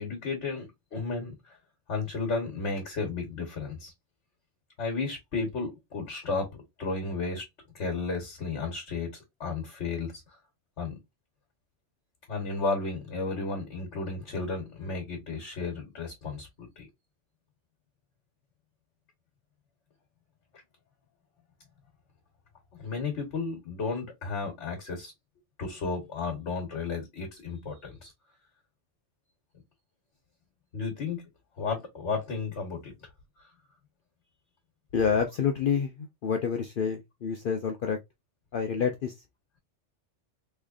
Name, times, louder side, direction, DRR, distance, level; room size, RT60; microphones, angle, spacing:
voice 1, 0.0-1.6 1.9-3.9 4.8-6.5 6.8-7.4 7.7-10.4 10.8-11.0 12.3-16.9 22.8-25.1 25.6-28.1 30.7-31.2 31.6-32.9 33.4-33.5, left 4 dB, 75° left, 1.5 m, -33 dB
voice 2, 34.9-38.0 38.5-39.1, left 6 dB, 55° left, 0.6 m, -28 dB
3.6 x 3.3 x 2.4 m
omnidirectional pair, 1.2 m